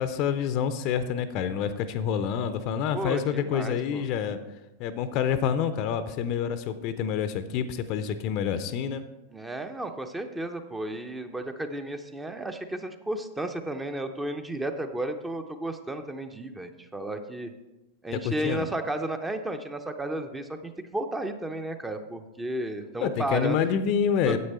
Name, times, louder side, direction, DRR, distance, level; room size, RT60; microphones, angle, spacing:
voice 1, 0.0-4.4 4.8-9.0 18.2-18.7 23.0-24.4, left 8 dB, 40° left, 11 dB, 0.6 m, -27 dB
voice 2, 2.9-4.1 9.3-17.5 18.0-23.8 24.3-24.4, right 1 dB, 10° right, 7 dB, 0.7 m, -33 dB
9.4 x 8.0 x 4.3 m, 1.0 s
figure-of-eight pair, 90°, 0 cm